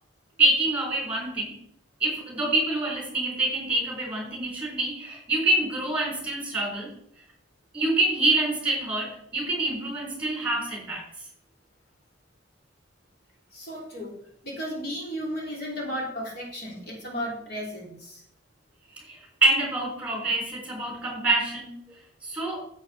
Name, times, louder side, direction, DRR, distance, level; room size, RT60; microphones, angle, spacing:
voice 1, 0.4-1.6 2.0-6.9 7.7-11.0 19.1-21.8 22.2-22.6, right 2 dB, 10° right, -2 dB, 4.0 m, -26 dB
voice 2, 13.5-14.1 14.4-18.2, equal, 60° left, -3 dB, 3.4 m, -34 dB
10.5 x 7.9 x 4.3 m, 0.71 s
head